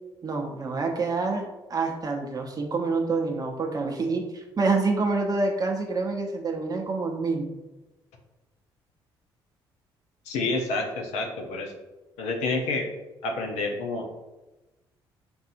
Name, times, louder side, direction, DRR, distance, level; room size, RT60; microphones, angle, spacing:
voice 1, 0.2-7.5, right 3 dB, 30° right, 1 dB, 0.8 m, -27 dB
voice 2, 10.3-11.7 12.2-12.9 13.2-14.1, left 3 dB, 60° left, 2 dB, 0.7 m, -28 dB
6.9 x 2.6 x 2.6 m, 1.1 s
figure-of-eight pair, 45°, 13 cm